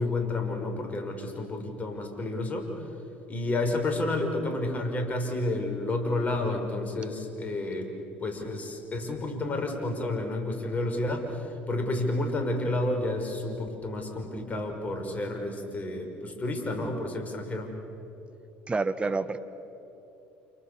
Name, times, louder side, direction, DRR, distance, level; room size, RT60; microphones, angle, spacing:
voice 1, 0.0-2.7 3.3-7.9 8.2-17.7, left 2 dB, 30° left, 4 dB, 5.7 m, -30 dB
voice 2, 18.7-19.4, right 3 dB, 20° right, 11 dB, 1.4 m, -28 dB
29.5 x 29.0 x 7.0 m, 2.9 s
hypercardioid pair, 65°, 5 cm